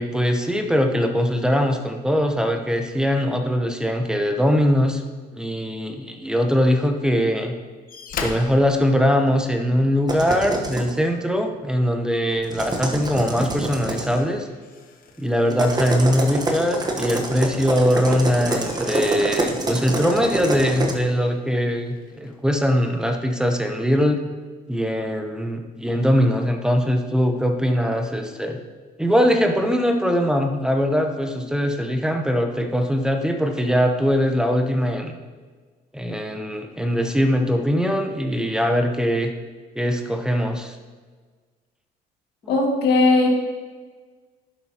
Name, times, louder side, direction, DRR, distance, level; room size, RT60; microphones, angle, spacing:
voice 1, 0.0-5.0 5.3-7.5 8.2-14.5 15.2-24.2 24.7-28.6 29.0-35.2 35.9-39.3 39.8-40.8, equal, 5° right, 4 dB, 0.8 m, -21 dB
sound 1, 7.9-9.9 11.4-11.6 12.0-17.8 18.2-22.4 23.3-23.4, left 5 dB, 55° left, 1.1 m, -41 dB
sound 2, 10.1-10.9 12.4-14.2 15.5-20.9, right 2 dB, 25° right, 1.1 m, -26 dB
voice 2, 42.5-43.3, left 3 dB, 75° left, 0 dB, 2.0 m, -17 dB
10.5 x 7.6 x 2.9 m, 1.4 s
cardioid pair, 110°, 17 cm